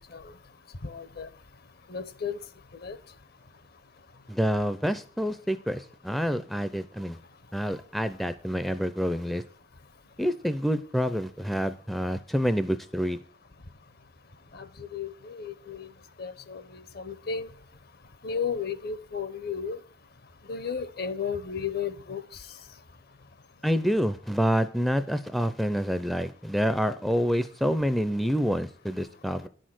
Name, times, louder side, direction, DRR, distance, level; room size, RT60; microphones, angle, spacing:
voice 1, 0.8-1.3 1.9-2.4 2.8-3.0 14.5-15.9 16.2-17.5 18.2-19.8 20.4-22.6, left 6 dB, 50° left, 0.8 m, -34 dB
voice 2, 4.3-7.2 7.5-9.4 10.2-13.2 23.6-29.5, equal, ahead, 0.5 m, -27 dB
10.5 x 6.4 x 7.6 m
head